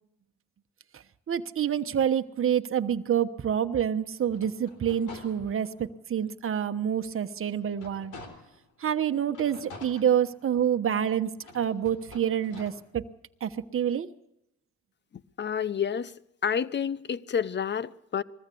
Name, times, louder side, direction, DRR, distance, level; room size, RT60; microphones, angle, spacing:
voice 1, 1.3-8.2 8.8-13.0 13.4-14.1, right 9 dB, 45° right, 1.2 m, -27 dB
sound 1, 4.2-5.9 6.4-6.5 6.9-8.7 9.3-10.8 11.4-12.7, left 3 dB, 80° left, 3.8 m, -48 dB
voice 2, 15.4-16.1 16.4-18.2, left 7 dB, 35° left, 0.8 m, -29 dB
21.5 x 14.5 x 8.5 m
cardioid pair, 90°, 30 cm